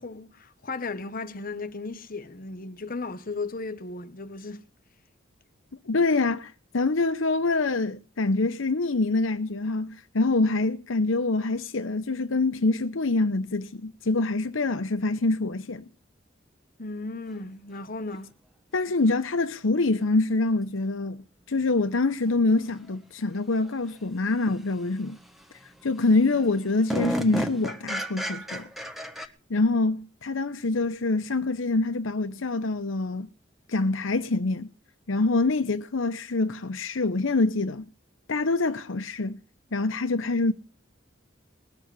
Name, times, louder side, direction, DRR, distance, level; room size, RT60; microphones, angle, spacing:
voice 1, 0.0-4.6 16.8-18.3, left 3 dB, 45° left, 1.1 m, -35 dB
voice 2, 5.9-15.8 18.7-25.2 25.8-28.7 29.5-33.3 33.7-34.7 35.1-37.9 38.3-39.4 39.7-40.5, left 3 dB, 85° left, 0.8 m, -25 dB
sound 1, 21.6-21.7 24.5-24.6 25.1-25.5 26.0-26.1 26.3-29.3, equal, ahead, 1.4 m, -31 dB
20.5 x 7.6 x 8.2 m
head